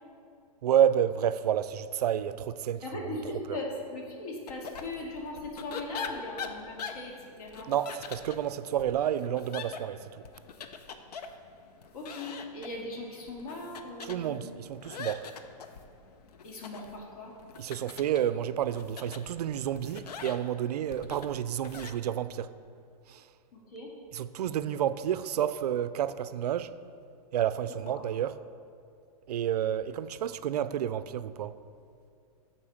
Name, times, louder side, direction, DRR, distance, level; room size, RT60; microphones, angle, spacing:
voice 1, 0.6-2.8 3.5-3.6 7.7-10.2 14.0-15.3 17.6-22.5 23.1-23.2 24.1-26.8 27.3-28.4 29.3-31.5, right 10 dB, 85° right, 0.4 m, -30 dB
voice 2, 2.8-7.7 11.9-14.5 16.4-17.4 23.5-23.9 27.8-28.0, left 2 dB, 70° left, 2.1 m, -39 dB
sound 1, 4.5-21.9, left 6 dB, 85° left, 0.7 m, -44 dB
8.9 x 4.3 x 6.4 m
hypercardioid pair, 175°, 20 cm